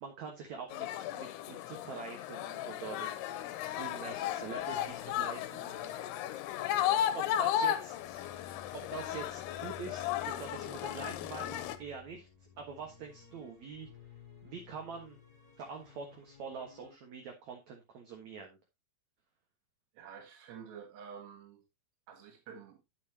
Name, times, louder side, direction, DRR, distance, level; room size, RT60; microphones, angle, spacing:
voice 1, 0.0-6.2 7.1-8.3 8.9-12.3 12.6-13.9 14.4-15.2 15.6-18.6, right 5 dB, 55° right, 2.2 m, -45 dB
sound 1, 0.7-11.8, left 11 dB, 80° left, 2.7 m, -35 dB
sound 2, 3.1-16.9, left 7 dB, 5° right, 2.8 m, -55 dB
voice 2, 19.9-21.6 22.1-22.8, right 7 dB, 80° right, 4.0 m, -49 dB
9.5 x 8.9 x 2.8 m
omnidirectional pair, 4.8 m